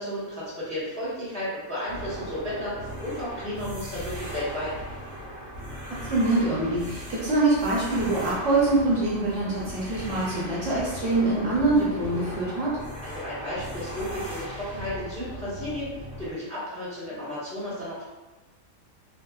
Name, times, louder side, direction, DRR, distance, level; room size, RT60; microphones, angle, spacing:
voice 1, 0.0-4.7 13.0-18.0, left 1 dB, 5° left, -10 dB, 1.1 m, -33 dB
sound 1, 1.9-16.3, equal, 35° right, 1.0 m, -38 dB
voice 2, 6.1-12.8, right 2 dB, 60° right, -7 dB, 1.1 m, -24 dB
3.0 x 2.8 x 2.3 m, 1.1 s
omnidirectional pair, 1.5 m